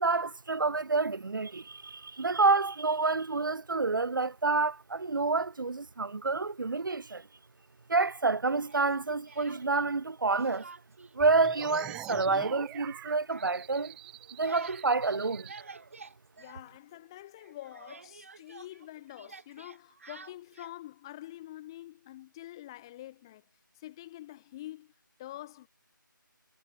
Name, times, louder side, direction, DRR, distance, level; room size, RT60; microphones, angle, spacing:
voice 1, 0.0-7.3 7.9-10.7 11.1-14.0 14.4-15.5, right 3 dB, 70° right, 0.4 m, -28 dB
Speech, 8.7-10.0 10.3-11.2 11.4-17.1 17.4-20.8, right 4 dB, 40° right, 2.1 m, -52 dB
sound 1, 11.2-15.6, right 16 dB, 5° right, 0.9 m, -45 dB
voice 2, 16.4-23.4 23.7-24.9 25.2-25.7, left 14 dB, 15° left, 1.4 m, -46 dB
figure-of-eight pair, 160°, 11 cm